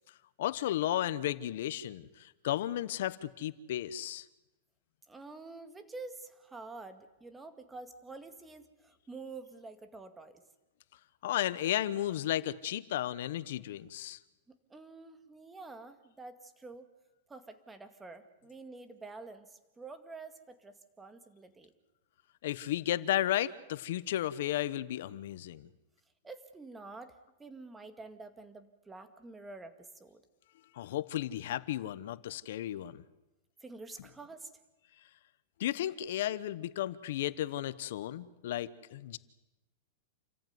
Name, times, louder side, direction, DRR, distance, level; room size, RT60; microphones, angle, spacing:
voice 1, 0.4-4.3 11.2-14.2 22.4-25.7 30.7-33.0 35.6-39.2, left 12 dB, 70° left, 16 dB, 1.1 m, -34 dB
voice 2, 5.1-10.4 14.7-16.9 17.3-21.7 26.2-30.2 33.6-34.5, right 3 dB, 10° right, 9 dB, 2.0 m, -48 dB
29.0 x 14.5 x 9.6 m, 1.0 s
supercardioid pair, 135°, 0 cm